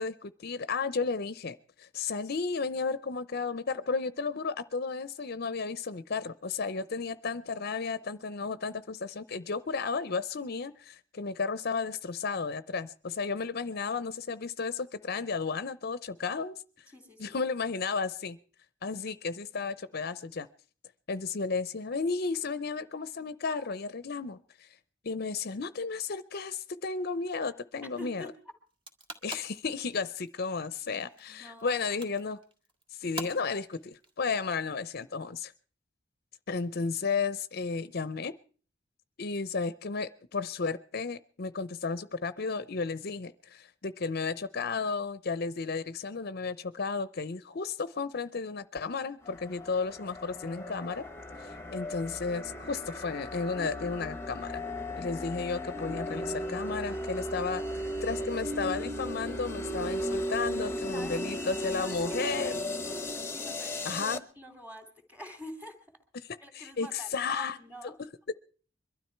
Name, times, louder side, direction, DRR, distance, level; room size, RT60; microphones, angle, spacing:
voice 1, 0.0-16.6 17.2-18.4 18.8-20.5 21.1-24.7 25.0-28.3 29.2-32.4 32.9-35.5 36.5-38.3 39.2-51.0 51.4-54.6 55.0-57.6 58.0-62.6 63.9-64.2 66.5-67.6 68.3-68.4, left 4 dB, 55° left, 15 dB, 0.6 m, -33 dB
voice 2, 16.9-17.4 28.0-28.3 31.3-32.0 60.9-61.4 61.8-66.0 66.4-68.0, equal, 10° right, 6 dB, 2.8 m, -47 dB
sound 1, 28.7-35.0, right 1 dB, 25° right, 1.8 m, -46 dB
sound 2, 49.2-64.2, equal, 15° left, 1.0 m, -36 dB
22.5 x 12.5 x 4.5 m, 0.42 s
head